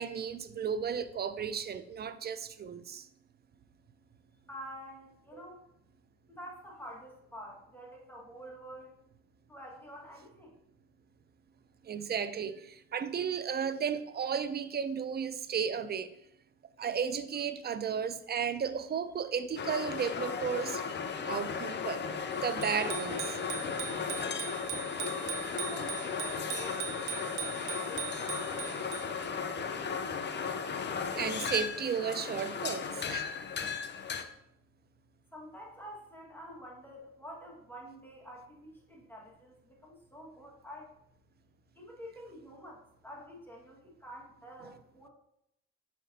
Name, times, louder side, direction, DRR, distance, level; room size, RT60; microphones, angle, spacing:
voice 1, 0.0-3.1 5.3-5.4 11.8-16.1 16.8-20.8 21.3-22.0 22.3-23.4 31.1-33.3, right 7 dB, 35° right, 0.4 m, -34 dB
voice 2, 4.5-5.6 6.3-8.9 9.5-10.6 25.6-29.5 35.3-41.0 41.7-45.1, equal, 5° left, 1.6 m, -49 dB
sound 1, 19.6-34.2, left 6 dB, 35° left, 0.6 m, -36 dB
Bicycle bell, 22.6-29.3, right 11 dB, 85° right, 0.6 m, -41 dB
6.1 x 5.8 x 2.7 m
cardioid pair, 90°, 30 cm